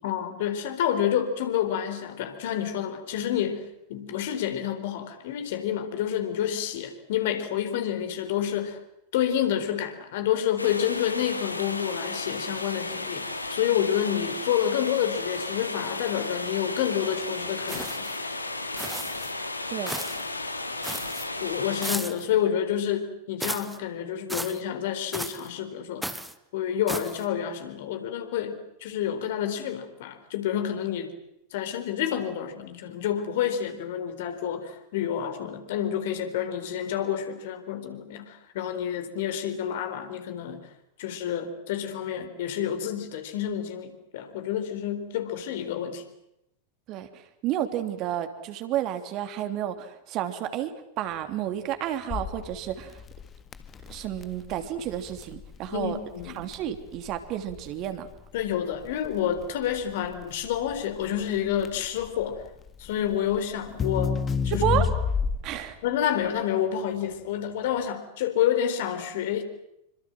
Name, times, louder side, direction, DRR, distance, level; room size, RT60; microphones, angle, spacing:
voice 1, 0.0-8.8 9.1-18.3 21.4-26.2 26.5-31.1 31.5-40.7 41.0-46.0 55.7-56.4 58.3-62.4 62.8-64.2 64.4-64.8 65.8-69.4, left 9 dB, 55° left, 8 dB, 4.2 m, -29 dB
sound 1, 10.6-21.9, left 2 dB, 85° left, 2.7 m, -34 dB
sound 2, 17.7-18.2 18.8-19.3 19.9-20.3 20.8-21.3 21.8-22.3 23.4-23.8 24.3-24.6 25.1-25.5 26.0-26.3 26.9-27.2, right 1 dB, 5° right, 1.5 m, -34 dB
voice 2, 19.7-20.2 46.9-50.7 51.0-53.0 53.9-56.0 56.3-58.1 64.5-64.9 65.4-65.8, right 11 dB, 40° right, 8 dB, 3.0 m, -31 dB
Crackle, 52.1-65.7, left 6 dB, 20° left, 1.8 m, -31 dB
27.5 x 25.5 x 7.7 m, 0.81 s
figure-of-eight pair, 90°, 0 cm